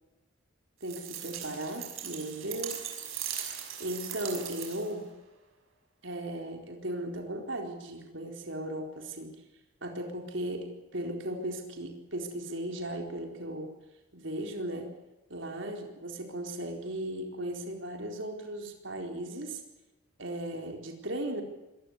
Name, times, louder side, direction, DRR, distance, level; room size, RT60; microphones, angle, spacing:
voice 1, 0.8-2.9 3.8-5.1 6.0-9.4 9.8-13.7 14.1-14.9 15.3-19.6 20.2-21.4, right 1 dB, 65° right, 3 dB, 4.3 m, -36 dB
sound 1, 0.8-5.0, right 9 dB, 90° right, 6.0 m, -39 dB
25.0 x 20.5 x 8.2 m, 1.0 s
head